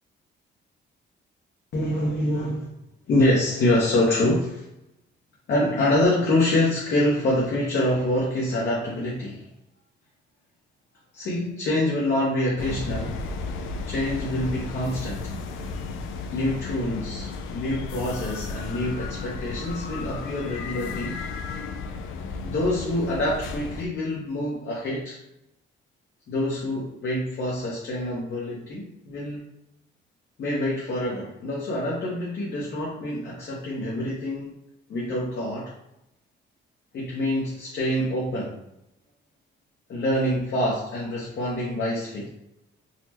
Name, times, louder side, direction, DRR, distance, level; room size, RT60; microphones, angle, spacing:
voice 1, 1.7-2.7 3.1-4.6 5.5-9.5 11.1-13.2 13.9-15.3 16.3-21.2 22.4-25.2 26.3-29.4 30.4-34.5 34.9-35.7 36.9-38.6 39.9-42.3, left 1 dB, 60° left, -4 dB, 0.9 m, -26 dB
sound 1, 12.6-23.8, left 4 dB, 85° left, 0.4 m, -34 dB
4.0 x 2.1 x 2.8 m, 0.86 s
cardioid pair, 90°, 20 cm